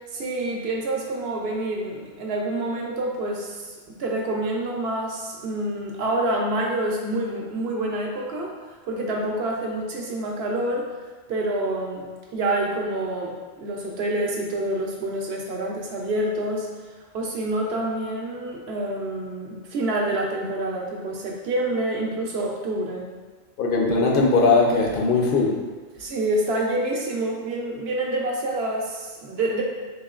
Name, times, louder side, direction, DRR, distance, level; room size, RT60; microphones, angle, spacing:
voice 1, 0.1-8.5 8.9-10.9 11.3-12.1 12.3-16.7 17.1-23.0 26.0-29.6, right 1 dB, 75° right, -1 dB, 0.9 m, -27 dB
voice 2, 23.6-25.6, left 3 dB, 65° left, -1 dB, 0.7 m, -19 dB
4.2 x 2.9 x 2.4 m, 1.4 s
omnidirectional pair, 1.1 m